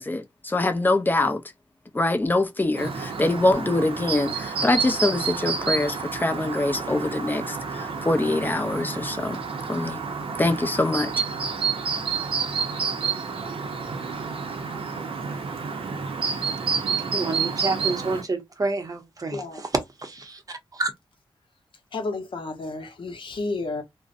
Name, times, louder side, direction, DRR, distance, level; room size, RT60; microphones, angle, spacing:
voice 1, 0.0-1.4 1.9-9.4 9.7-10.0 10.4-11.1, left 2 dB, 20° left, 0.4 m, -24 dB
Chirp tweet, 2.7-18.2, right 5 dB, 80° right, 0.6 m, -29 dB
voice 2, 17.1-19.7 20.0-20.9, right 3 dB, 40° right, 0.6 m, -29 dB
voice 3, 19.3-19.7 21.9-23.8, left 3 dB, 65° left, 0.7 m, -31 dB
2.5 x 2.0 x 2.4 m
wide cardioid pair, 100°, 9 cm